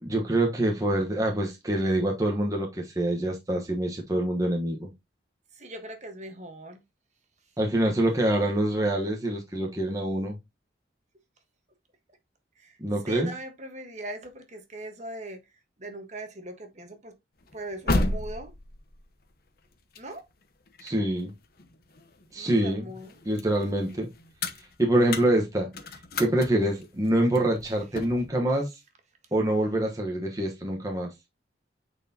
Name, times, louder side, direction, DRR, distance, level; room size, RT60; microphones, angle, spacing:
voice 1, 0.0-4.9 7.6-10.4 12.8-13.3 20.8-21.3 22.3-22.8 23.2-24.1 24.8-25.7 26.2-28.7 29.3-31.1, right 1 dB, 20° right, 1.1 m, -25 dB
voice 2, 5.6-6.8 12.6-12.7 13.0-15.4 15.8-17.1 17.5-18.5 20.0-20.2 22.3-23.1, right 1 dB, 40° right, 1.4 m, -40 dB
sound 1, 17.4-22.4 22.9-28.3, left 2 dB, 50° left, 0.9 m, -34 dB
8.7 x 4.5 x 2.8 m
head